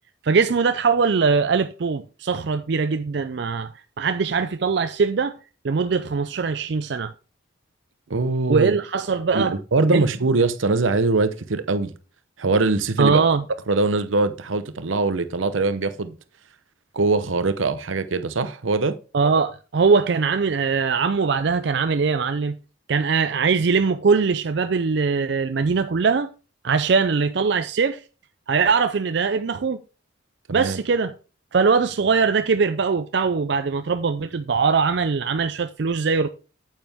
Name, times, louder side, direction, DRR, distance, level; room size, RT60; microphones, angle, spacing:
voice 1, 0.2-3.7 4.0-5.4 5.6-7.1 8.5-9.6 9.9-10.0 13.0-13.4 19.1-22.6 22.9-26.3 26.6-28.0 28.5-29.8 30.5-31.1 31.5-36.3, right 5 dB, 60° right, 0.4 m, -21 dB
voice 2, 8.1-8.7 9.3-11.9 12.4-13.2 13.7-16.2 16.9-18.9 30.6-30.8, right 3 dB, 80° right, 0.8 m, -22 dB
9.0 x 7.5 x 3.5 m
head